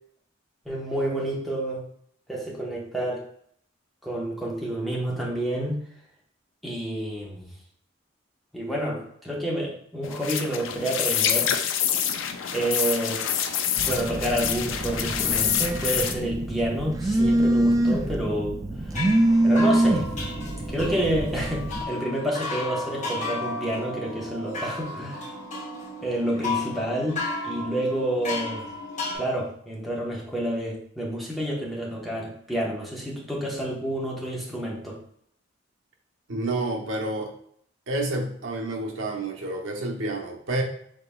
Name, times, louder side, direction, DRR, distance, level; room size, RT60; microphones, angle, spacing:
voice 1, 0.6-1.8 2.3-3.2 4.0-5.8 6.6-7.5 8.5-11.5 12.5-13.4 13.8-18.6 18.9-19.0 19.4-20.1 20.7-25.2 26.0-28.7 29.1-35.0, right 1 dB, ahead, -4 dB, 1.1 m, -29 dB
sound 1, 10.0-16.1, left 9 dB, 75° left, 0.4 m, -26 dB
Telephone, 13.8-21.8, right 1 dB, 20° right, 0.3 m, -25 dB
sound 2, 18.8-29.2, left 3 dB, 40° left, 1.2 m, -34 dB
voice 2, 36.3-37.3 37.9-40.6, right 2 dB, 75° right, 2 dB, 0.9 m, -29 dB
5.2 x 3.8 x 2.3 m, 0.66 s
head